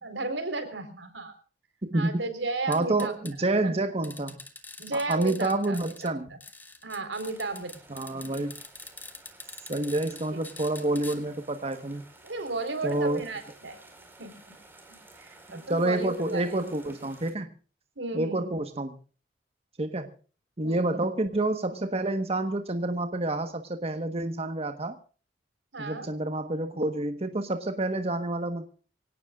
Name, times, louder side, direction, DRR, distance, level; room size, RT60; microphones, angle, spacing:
voice 1, 0.0-1.3 1.9-3.1 3.4-3.7 4.8-6.4 6.8-7.7 8.3-8.4 10.3-10.4 12.2-13.8 14.2-14.3 15.1-16.4 18.0-18.5 20.6-21.0 25.7-26.1, right 3 dB, 90° right, 8 dB, 4.1 m, -34 dB
voice 2, 1.8-2.2 2.7-4.4 4.9-6.3 7.9-8.5 9.7-12.0 12.8-13.2 15.5-17.5 18.1-19.0 19.8-20.1 20.6-25.0 25.8-28.7, right 2 dB, 35° right, 7 dB, 1.3 m, -28 dB
sound 1, 2.7-3.3 4.0-6.1 6.4-11.2, left 3 dB, 10° left, 1.9 m, -45 dB
sound 2, 7.2-17.3, right 2 dB, 10° right, 4.7 m, -54 dB
25.0 x 18.0 x 2.4 m, 0.38 s
head